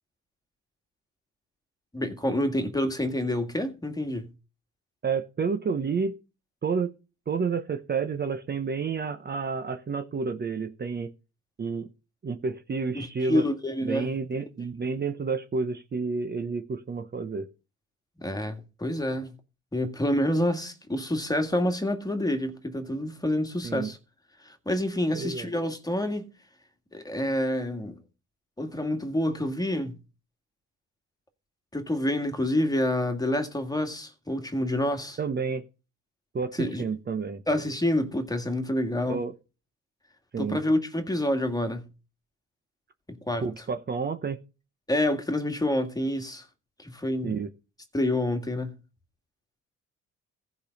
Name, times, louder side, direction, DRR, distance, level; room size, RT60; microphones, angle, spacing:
voice 1, 1.9-4.3 12.9-14.1 18.2-19.3 19.7-24.0 24.4-26.3 26.9-28.0 28.6-30.0 31.7-35.2 36.5-36.9 37.5-39.2 40.4-41.9 43.1-43.5 44.9-46.4 46.8-47.4 47.9-48.7, left 1 dB, 10° left, 1.8 m, -28 dB
voice 2, 5.0-6.1 6.6-6.9 7.3-11.1 11.6-11.9 12.2-13.4 13.8-17.5 23.6-23.9 25.1-25.5 35.2-35.6 36.3-37.4 39.1-39.3 40.3-40.6 43.4-44.4 47.2-47.5, right 5 dB, 35° right, 0.9 m, -30 dB
15.0 x 5.2 x 5.3 m
cardioid pair, 90°, 30 cm